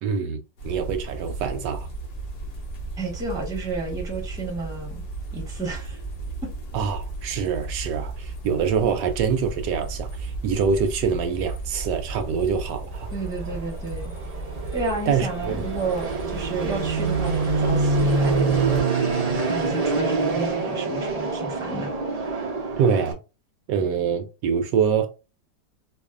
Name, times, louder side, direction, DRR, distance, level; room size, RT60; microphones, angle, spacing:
voice 1, 0.0-1.9 6.7-13.1 15.1-15.5 22.8-23.2 23.7-25.1, right 6 dB, 75° right, 1.1 m, -25 dB
sound 1, 0.6-18.8, right 3 dB, 70° left, 1.9 m, -35 dB
voice 2, 3.0-5.0 5.3-6.0 6.4-6.5 13.1-14.1 14.7-18.9 19.4-21.9, right 3 dB, 5° right, 0.9 m, -31 dB
Fixed-wing aircraft airplane, 12.9-23.1, right 4 dB, 40° right, 0.5 m, -26 dB
4.7 x 2.5 x 2.4 m
omnidirectional pair, 1.9 m